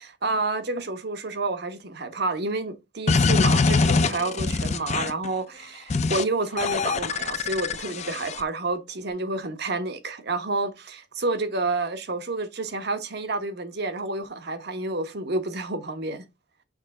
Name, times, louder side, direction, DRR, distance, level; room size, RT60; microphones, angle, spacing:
voice 1, 0.2-16.2, right 2 dB, 60° right, 1.0 m, -29 dB
sound 1, 3.1-5.3 5.9-6.2 6.6-8.4, left 4 dB, 35° left, 0.5 m, -23 dB
6.4 x 3.2 x 4.8 m
head